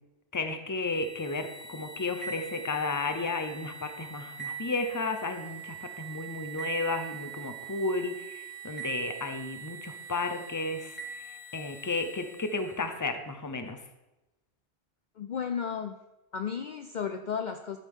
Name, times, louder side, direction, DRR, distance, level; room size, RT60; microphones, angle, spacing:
voice 1, 0.3-13.8, left 3 dB, 20° left, 7 dB, 0.8 m, -33 dB
sound 1, 0.8-12.9, right 7 dB, 10° right, 2.1 m, -43 dB
voice 2, 15.2-16.0 16.3-17.8, left 7 dB, 55° left, 7 dB, 0.6 m, -33 dB
12.0 x 8.2 x 3.7 m, 1.0 s
omnidirectional pair, 1.1 m